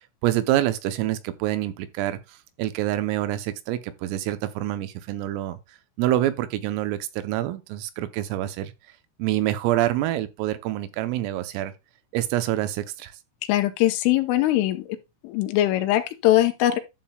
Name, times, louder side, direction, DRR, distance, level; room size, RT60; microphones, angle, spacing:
voice 1, 0.2-5.6 6.0-8.7 9.2-11.7 12.1-13.1, right 14 dB, 85° right, 3.4 m, -26 dB
voice 2, 13.5-14.9 15.2-16.8, left 14 dB, 80° left, 3.2 m, -21 dB
11.5 x 7.5 x 2.3 m
omnidirectional pair, 5.9 m